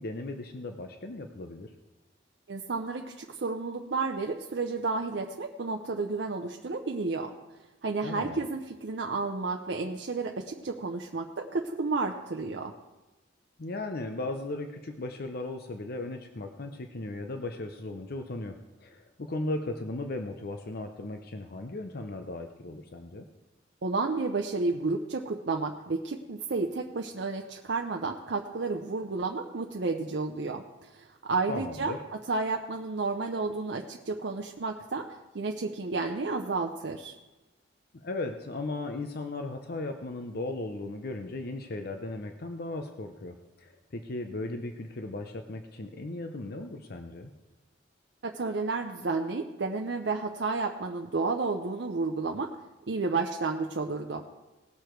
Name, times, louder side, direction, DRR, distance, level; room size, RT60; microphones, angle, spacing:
voice 1, 0.0-1.7 8.0-8.4 13.6-23.3 31.5-32.0 37.9-47.3, left 2 dB, 55° left, 6 dB, 0.7 m, -37 dB
voice 2, 2.5-7.3 7.8-12.7 23.8-35.1 35.3-37.1 48.2-52.5 52.9-54.2, right 3 dB, 65° right, 3 dB, 0.6 m, -31 dB
18.0 x 6.8 x 4.6 m, 1.1 s
head